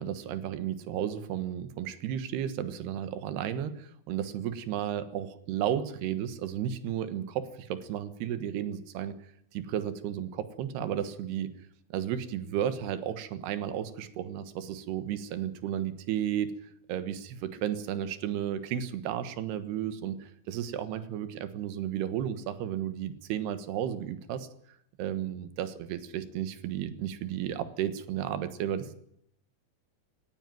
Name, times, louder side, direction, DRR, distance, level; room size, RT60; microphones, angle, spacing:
voice 1, 0.0-9.2 9.5-11.5 11.9-16.5 16.9-24.5 25.0-28.9, right 10 dB, 85° right, 11 dB, 3.4 m, -33 dB
18.0 x 17.5 x 9.2 m, 0.70 s
omnidirectional pair, 4.6 m